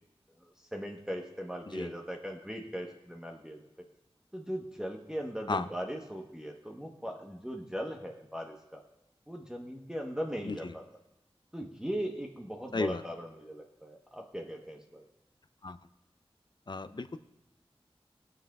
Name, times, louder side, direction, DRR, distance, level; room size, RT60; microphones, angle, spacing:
voice 1, 0.4-3.6 4.3-8.8 9.3-10.8 11.5-15.1, equal, 5° right, 0 dB, 1.0 m, -39 dB
voice 2, 16.7-17.2, left 3 dB, 45° left, 11 dB, 0.5 m, -33 dB
22.0 x 7.5 x 2.3 m, 0.94 s
wide cardioid pair, 65°, 10 cm